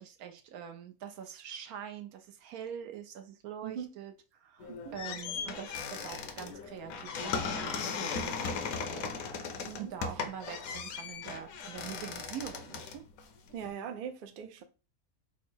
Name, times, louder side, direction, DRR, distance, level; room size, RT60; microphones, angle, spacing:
voice 1, 0.0-9.4 9.8-13.0, right 9 dB, 85° right, 1.1 m, -44 dB
sound 1, 4.6-13.7, left 5 dB, 75° left, 1.0 m, -37 dB
voice 2, 13.5-14.6, right 8 dB, 70° right, 0.5 m, -41 dB
3.7 x 2.1 x 4.3 m
omnidirectional pair, 1.5 m